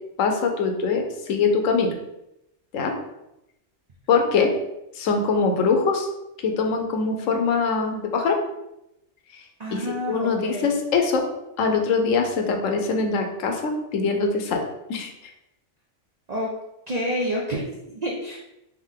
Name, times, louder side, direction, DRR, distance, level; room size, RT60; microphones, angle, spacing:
voice 1, 0.2-1.9 2.7-2.9 4.1-4.5 5.0-6.1 6.4-8.4 9.7-11.2 11.6-14.6 14.9-15.1, left 4 dB, 80° left, 3 dB, 1.0 m, -23 dB
voice 2, 9.6-10.7 16.3-16.5 16.9-18.4, equal, 55° right, -3 dB, 0.4 m, -29 dB
3.4 x 2.9 x 3.6 m, 0.88 s
omnidirectional pair, 1.3 m